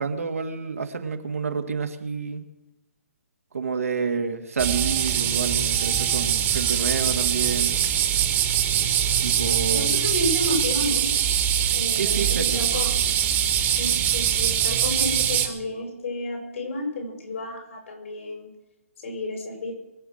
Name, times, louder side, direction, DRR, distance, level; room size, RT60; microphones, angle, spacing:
voice 1, 0.0-2.4 3.5-7.8 9.2-10.0 11.6-12.7, right 5 dB, 70° right, 6 dB, 2.2 m, -29 dB
sound 1, 4.6-15.5, right 10 dB, 20° right, 2.0 m, -23 dB
voice 2, 9.7-11.3 11.7-12.9 13.8-18.5 19.0-19.8, left 1 dB, 60° left, 2 dB, 7.1 m, -31 dB
24.0 x 8.1 x 6.5 m, 0.99 s
figure-of-eight pair, 135°, 8 cm